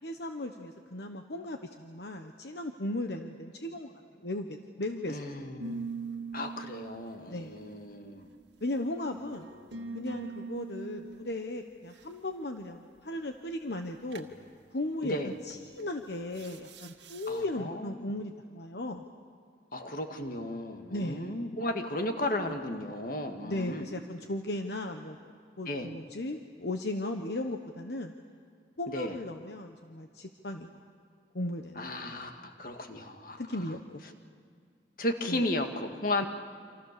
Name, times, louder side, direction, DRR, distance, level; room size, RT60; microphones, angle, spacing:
voice 1, 0.0-5.2 7.3-7.6 8.6-9.5 9.9-14.3 14.7-19.0 20.9-21.2 23.4-25.2 25.6-28.1 28.8-30.8 31.3-32.1 33.4-34.0 35.3-35.4, left 1 dB, 65° left, 5 dB, 1.2 m, -36 dB
voice 2, 5.1-5.8 6.3-8.3 15.0-15.3 17.3-18.1 19.7-23.9 25.7-25.9 28.9-29.2 31.8-33.4 35.0-36.3, left 1 dB, 50° left, 5 dB, 1.9 m, -34 dB
sound 1, 5.6-8.4 9.1-11.2 14.1-14.3 15.5-15.8 16.3-17.3, right 4 dB, 80° right, 1.8 m, -42 dB
28.5 x 26.5 x 6.8 m, 2.2 s
head